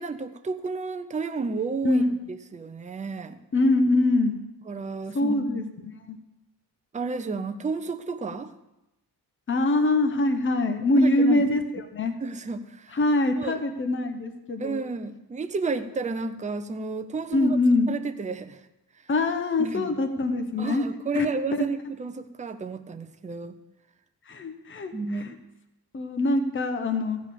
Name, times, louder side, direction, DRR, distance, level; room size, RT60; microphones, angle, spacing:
voice 1, 0.0-3.4 4.6-5.7 6.9-8.5 11.0-11.4 12.2-13.0 13.4-13.6 14.6-17.6 17.9-18.6 19.6-19.9 20.6-23.6 24.9-25.4, right 4 dB, 20° right, 8 dB, 0.6 m, -32 dB
voice 2, 3.5-4.4 5.1-6.2 9.5-12.1 12.9-14.8 17.3-17.9 19.1-20.8 21.1-21.3 21.6-21.7 24.3-24.9 25.2-25.3 25.9-27.2, left 2 dB, 30° left, 7 dB, 0.9 m, -24 dB
15.0 x 5.3 x 6.9 m, 0.94 s
wide cardioid pair, 145°, 41 cm